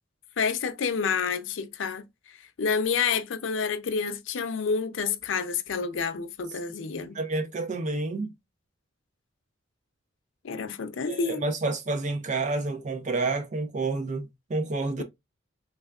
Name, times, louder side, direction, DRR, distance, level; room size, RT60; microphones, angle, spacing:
voice 1, 0.4-2.0 2.6-7.2 10.4-11.4, left 5 dB, 85° left, 0.5 m, -28 dB
voice 2, 7.1-8.3 11.1-15.0, right 3 dB, 40° right, 0.5 m, -29 dB
3.4 x 3.3 x 2.3 m
head